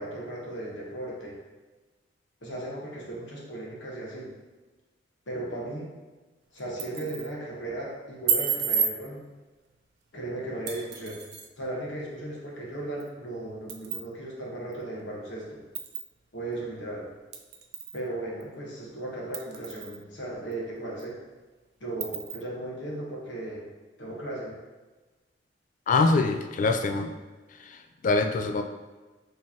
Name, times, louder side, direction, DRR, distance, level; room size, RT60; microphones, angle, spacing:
voice 1, 0.0-1.3 2.4-4.3 5.3-5.9 6.5-9.2 10.1-11.2 11.6-15.6 16.3-17.1 17.9-21.1 21.8-23.6 24.0-24.5, right 1 dB, 80° left, -4 dB, 1.1 m, -36 dB
sound 1, 6.6-7.3 8.3-9.0 10.7-11.5 13.0-13.1 13.7-14.1 14.7-14.8 15.7-16.1 17.3-18.0 18.4-18.5 19.3-20.0 20.5-20.6 21.0-21.1 22.0-22.4, right 7 dB, 60° right, 0.4 m, -30 dB
voice 2, 25.9-27.1 27.6-28.6, left 3 dB, 45° left, 6 dB, 0.3 m, -24 dB
4.5 x 3.1 x 2.8 m, 1.2 s
head